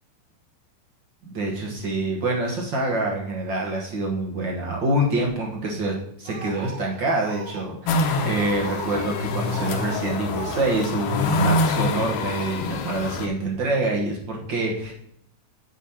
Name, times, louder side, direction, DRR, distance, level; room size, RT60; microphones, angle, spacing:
voice 1, 1.2-14.9, right 2 dB, 55° right, -1 dB, 1.3 m, -26 dB
Speech, 6.2-7.7 8.0-10.0 10.3-10.7 11.0-11.4, right 4 dB, 75° right, 2.8 m, -38 dB
sound 1, 7.9-13.3, left 2 dB, 75° left, 1.4 m, -25 dB
7.6 x 5.1 x 4.3 m, 0.72 s
omnidirectional pair, 3.6 m